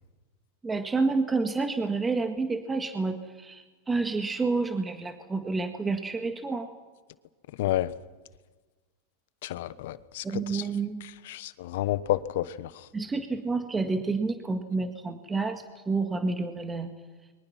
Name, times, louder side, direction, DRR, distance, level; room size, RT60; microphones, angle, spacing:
voice 1, 0.6-6.7 10.2-11.0 12.9-16.9, right 3 dB, 15° right, 6 dB, 1.8 m, -29 dB
voice 2, 7.6-7.9 9.4-10.6 11.2-12.9, left 14 dB, 70° left, 15 dB, 1.1 m, -30 dB
29.0 x 23.5 x 6.0 m, 1.3 s
hypercardioid pair, 120°, 0 cm